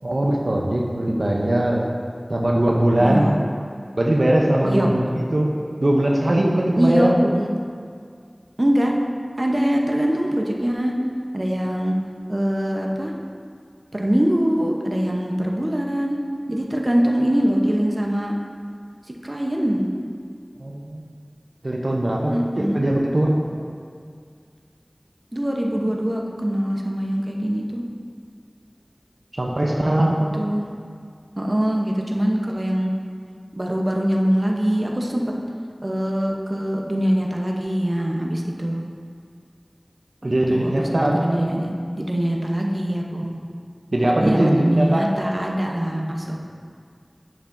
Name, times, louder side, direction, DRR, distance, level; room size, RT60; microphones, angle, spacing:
voice 1, 0.0-1.8 2.3-3.3 4.0-7.4 20.6-21.1 21.6-23.4 29.3-30.3 40.2-41.5 43.9-45.1, right 1 dB, 75° right, -1 dB, 0.6 m, -20 dB
voice 2, 3.0-3.4 4.6-4.9 6.8-7.5 8.6-8.9 9.4-10.9 11.3-11.9 12.3-13.1 13.9-16.2 16.5-18.3 19.2-19.9 22.3-22.8 25.3-27.8 30.4-30.7 31.4-32.9 33.6-35.2 35.8-38.8 40.5-41.7 42.0-43.3 44.2-46.4, equal, 45° right, 0 dB, 0.8 m, -23 dB
8.5 x 6.8 x 2.6 m, 2.2 s
wide cardioid pair, 45°, 0 cm